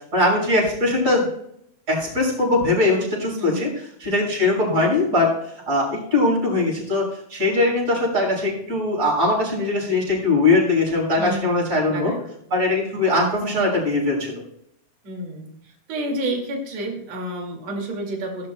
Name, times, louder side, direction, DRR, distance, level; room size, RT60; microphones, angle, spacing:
voice 1, 0.1-1.3 1.9-3.7 4.0-5.3 5.7-12.1 12.5-14.3, left 2 dB, 30° right, -4 dB, 6.4 m, -21 dB
voice 2, 3.4-3.7 11.2-12.2 15.0-18.5, right 1 dB, 55° right, 1 dB, 3.5 m, -30 dB
18.5 x 12.0 x 2.3 m, 0.73 s
omnidirectional pair, 3.6 m